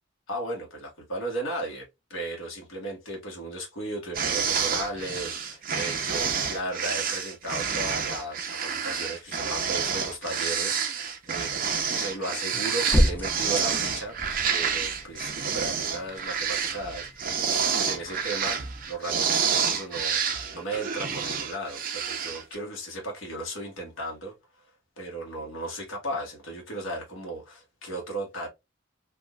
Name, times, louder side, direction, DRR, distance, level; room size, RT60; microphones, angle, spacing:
voice 1, 0.3-11.5 11.8-14.2 14.4-20.2 20.5-24.3 25.0-28.5, right 1 dB, 90° left, 1.3 m, -35 dB
sound 1, 4.1-22.6, right 6 dB, 45° right, 0.6 m, -29 dB
sound 2, 12.5-18.9, equal, 10° left, 0.3 m, -32 dB
3.5 x 2.5 x 2.3 m
head